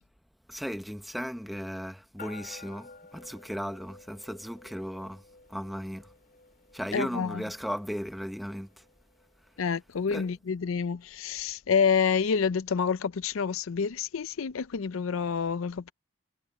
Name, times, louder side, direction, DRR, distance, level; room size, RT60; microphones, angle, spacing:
voice 1, 0.5-5.2 5.5-6.1 6.7-8.8 10.1-10.3, equal, ahead, 0.9 m, -36 dB
sound 1, 2.2-9.9, left 4 dB, 45° left, 3.3 m, -53 dB
voice 2, 6.9-7.4 9.6-15.9, left 6 dB, 70° left, 0.5 m, -28 dB
head